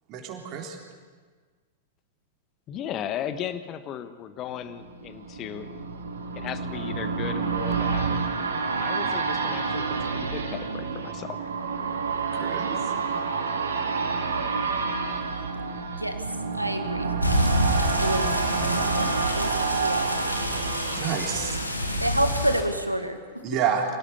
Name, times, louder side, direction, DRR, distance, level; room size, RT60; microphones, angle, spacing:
voice 1, 0.1-0.8 12.3-12.9 20.9-21.6 23.4-23.8, right 8 dB, 35° right, 1 dB, 3.9 m, -29 dB
voice 2, 2.7-5.7 6.3-8.2 8.8-11.4, left 10 dB, 30° left, 11 dB, 1.4 m, -36 dB
sound 1, 4.5-22.3 22.7-22.8, right 5 dB, 70° right, 2.5 m, -29 dB
voice 3, 16.5-17.1 18.0-18.3 18.7-20.2 22.0-23.4, right 1 dB, 90° right, 7 dB, 1.9 m, -29 dB
sound 2, 17.2-22.6, left 1 dB, 85° left, 2.4 m, -28 dB
25.5 x 17.5 x 7.2 m, 1.5 s
figure-of-eight pair, 95°, 0 cm